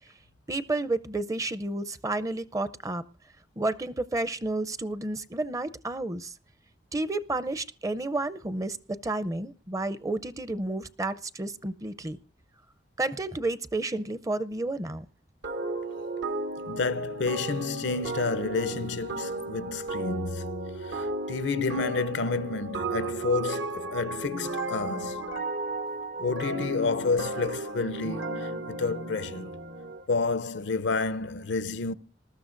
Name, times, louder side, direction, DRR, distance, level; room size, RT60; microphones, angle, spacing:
voice 1, 0.5-3.0 3.6-6.4 6.9-12.2 13.0-15.1, right 2 dB, 20° right, 0.5 m, -31 dB
sound 1, 15.4-30.0, right 2 dB, 80° right, 1.2 m, -34 dB
voice 2, 16.6-25.3 26.2-29.5 30.1-31.9, left 4 dB, 85° left, 0.6 m, -30 dB
20.0 x 13.0 x 2.5 m
head